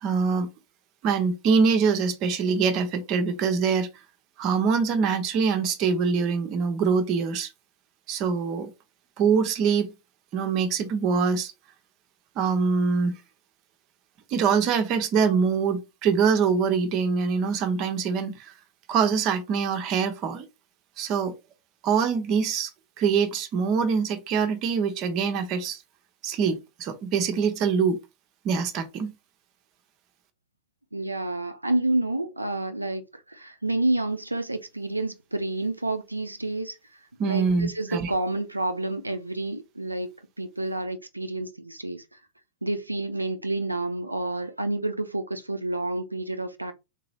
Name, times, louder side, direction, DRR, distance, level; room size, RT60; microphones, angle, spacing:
voice 1, 0.0-0.5 1.0-3.9 4.4-7.5 8.1-8.7 9.2-9.9 10.3-11.5 12.4-13.1 14.3-18.5 18.9-20.4 21.0-21.3 21.8-22.7 23.0-25.8 26.2-28.0 28.4-29.1 37.2-38.1, right 5 dB, 40° right, 0.8 m, -24 dB
voice 2, 30.9-36.8 37.2-40.1 40.4-42.0 42.6-46.7, right 2 dB, 85° right, 0.4 m, -29 dB
3.7 x 3.0 x 2.8 m
figure-of-eight pair, 90°, 0 cm